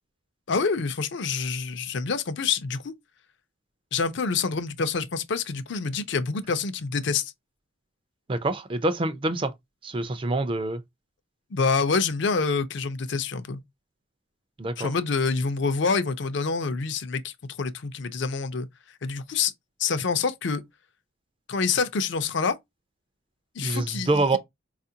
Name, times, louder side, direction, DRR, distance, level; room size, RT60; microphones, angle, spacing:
voice 1, 0.5-2.9 3.9-7.3 11.5-13.6 14.8-18.7 19.0-19.5 19.8-20.6 21.5-22.5 23.6-24.4, left 5 dB, 60° left, 0.5 m, -27 dB
voice 2, 8.3-9.5 9.8-10.8 14.6-14.9 23.6-24.4, right 2 dB, 25° right, 0.3 m, -26 dB
4.2 x 2.4 x 2.7 m
head